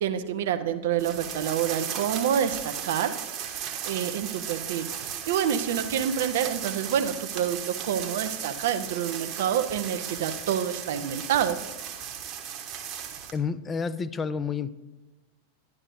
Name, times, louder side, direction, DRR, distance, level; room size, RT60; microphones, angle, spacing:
voice 1, 0.0-3.1 3.8-11.6, right 9 dB, 55° right, 9 dB, 0.6 m, -27 dB
sound 1, 1.0-13.4, right 9 dB, 35° right, 1.1 m, -36 dB
voice 2, 13.3-14.7, left 5 dB, 20° left, 14 dB, 0.5 m, -29 dB
11.5 x 10.5 x 2.6 m, 1.1 s
figure-of-eight pair, 90°, 0 cm